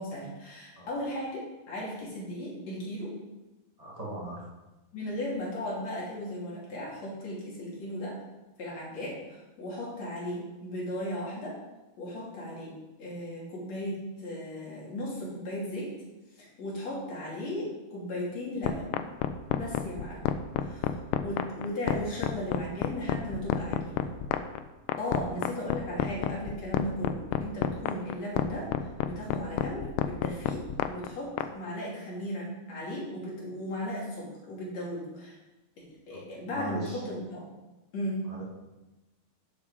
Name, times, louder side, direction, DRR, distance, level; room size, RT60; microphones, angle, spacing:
voice 1, 0.0-3.2 4.9-8.2 8.6-11.6 12.0-15.9 16.4-18.9 19.5-20.3 20.6-20.9 21.2-24.1 25.0-35.4 36.1-37.5 37.9-38.3, left 1 dB, 45° left, -5 dB, 3.7 m, -36 dB
voice 2, 3.8-4.5 25.3-25.4 36.1-36.2 36.5-37.0 38.3-38.4, right 2 dB, 20° right, -5 dB, 0.9 m, -39 dB
sound 1, 18.6-31.5, left 11 dB, 90° left, 2.8 m, -29 dB
11.0 x 7.4 x 5.0 m, 1.1 s
omnidirectional pair, 4.8 m